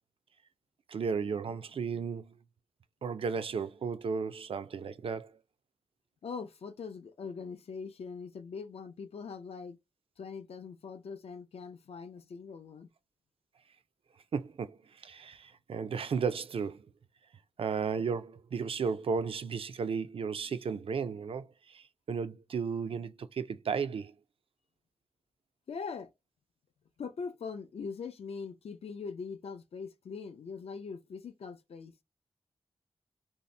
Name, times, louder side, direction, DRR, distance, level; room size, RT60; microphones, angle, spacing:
voice 1, 0.9-2.3 3.0-5.3 14.3-16.8 17.6-24.1, right 5 dB, 65° right, 0.4 m, -34 dB
voice 2, 6.2-9.8 10.2-12.9 25.7-26.1 27.0-31.9, left 5 dB, 80° left, 0.5 m, -42 dB
2.7 x 2.0 x 3.2 m
wide cardioid pair, 80°, 10 cm